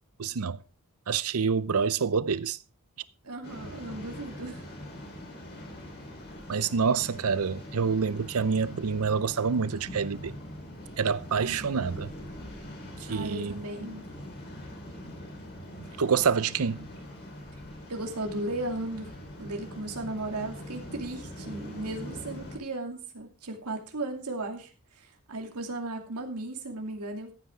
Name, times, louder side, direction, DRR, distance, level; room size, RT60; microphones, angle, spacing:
voice 1, 0.2-0.6 1.1-2.6 6.5-10.3 11.0-12.1 13.1-13.6 16.0-16.9, right 5 dB, 75° right, 0.6 m, -27 dB
voice 2, 3.2-4.7 11.4-11.7 13.1-14.0 17.9-19.1 19.4-27.3, right 2 dB, 90° right, 2.5 m, -36 dB
Waves surf, 3.4-22.6, left 1 dB, 50° left, 4.1 m, -43 dB
14.0 x 8.9 x 3.7 m
head